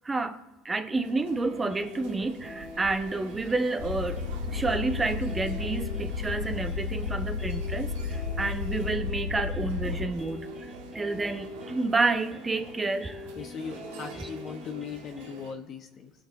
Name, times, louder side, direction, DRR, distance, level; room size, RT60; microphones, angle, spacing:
voice 1, 0.0-10.5 10.9-13.2, right 3 dB, 20° right, 9 dB, 0.9 m, -30 dB
sound 1, 1.0-15.5, right 5 dB, 90° right, 1.5 m, -47 dB
sound 2, 1.4-15.3, left 2 dB, 10° left, 2.5 m, -45 dB
sound 3, 3.8-10.1, left 5 dB, 90° left, 1.5 m, -32 dB
voice 2, 13.4-16.1, left 6 dB, 45° left, 4 dB, 1.1 m, -39 dB
19.5 x 6.5 x 4.0 m, 1.1 s
supercardioid pair, 105°, 0 cm